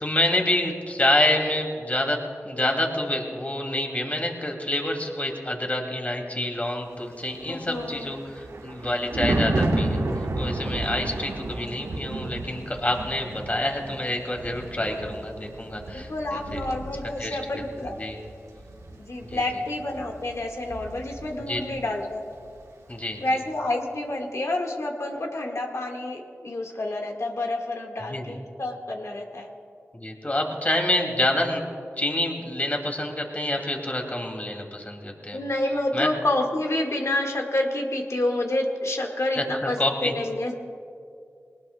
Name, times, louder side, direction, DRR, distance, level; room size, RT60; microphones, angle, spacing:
voice 1, 0.0-2.2 2.4-16.6 17.2-17.4 18.0-18.2 19.2-19.4 21.5-21.6 22.9-23.2 28.0-28.4 29.9-31.6 32.0-35.4 35.9-36.1 39.4-39.5 39.8-40.1, left 1 dB, 30° left, 2 dB, 2.6 m, -27 dB
Thunder, 7.4-21.9 22.2-22.5, right 2 dB, 85° right, 1.3 m, -32 dB
voice 2, 7.5-8.1 15.9-18.0 19.0-22.2 23.2-29.5 35.3-40.6, left 1 dB, 65° left, 1 dB, 1.7 m, -28 dB
21.0 x 19.0 x 2.3 m, 2.4 s
cardioid pair, 40°, 5 cm